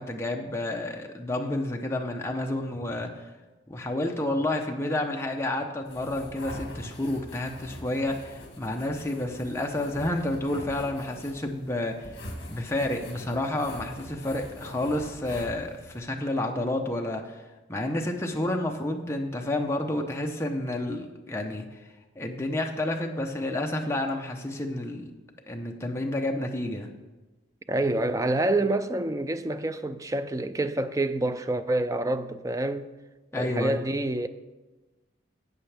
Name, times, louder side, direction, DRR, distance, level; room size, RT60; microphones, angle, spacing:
voice 1, 0.0-3.1 3.7-12.1 12.5-17.4 17.7-21.6 22.2-25.1 25.5-26.9 33.3-33.8, left 1 dB, 15° left, 0.7 m, -30 dB
sound 1, 5.8-16.0, left 1 dB, 60° left, 1.9 m, -43 dB
voice 2, 27.7-32.9 33.3-34.3, right 2 dB, 15° right, 0.3 m, -27 dB
13.0 x 8.1 x 3.4 m
head